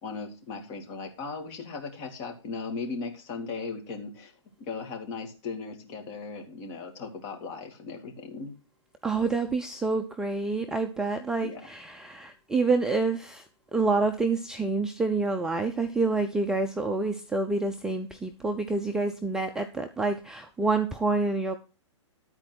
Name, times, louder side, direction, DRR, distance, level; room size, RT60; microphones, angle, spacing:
voice 1, 0.0-4.3 4.6-8.5 11.4-11.6, left 4 dB, 35° left, 3 dB, 2.5 m, -37 dB
voice 2, 9.0-13.4 13.7-21.5, right 3 dB, 5° right, 5 dB, 0.4 m, -27 dB
12.0 x 4.5 x 6.0 m, 0.34 s
hypercardioid pair, 145°, 16 cm